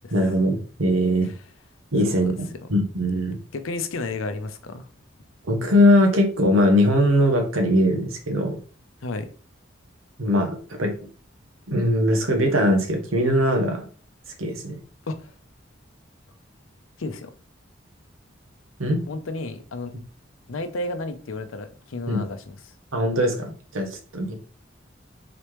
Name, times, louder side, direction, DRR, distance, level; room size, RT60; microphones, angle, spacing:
voice 1, 0.1-1.3 1.9-2.3 2.7-3.4 5.4-8.6 10.2-10.9 11.7-13.9 14.4-14.8 18.8-19.0 22.1-22.2 22.9-24.4, equal, 90° right, 0.9 m, -21 dB
voice 2, 3.5-4.9 9.0-9.3 15.1-15.3 17.0-17.3 19.1-19.9 20.5-22.6, left 2 dB, 85° left, 0.6 m, -32 dB
4.0 x 3.3 x 3.0 m
head